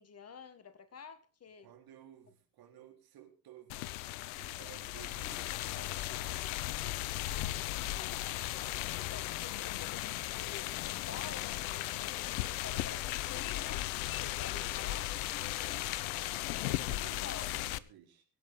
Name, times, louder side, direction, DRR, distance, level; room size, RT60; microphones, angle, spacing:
voice 1, 0.0-1.7 7.3-8.3 9.0-13.9 14.2-15.1 16.9-17.6, left 6 dB, 30° left, 1.8 m, -50 dB
voice 2, 1.6-3.7 4.3-6.3 14.1-14.4 15.5-16.0 16.3-18.2, right 10 dB, 50° right, 4.1 m, -56 dB
sound 1, 3.7-17.8, left 16 dB, 65° left, 0.8 m, -36 dB
23.5 x 9.4 x 3.8 m
figure-of-eight pair, 60°, 46 cm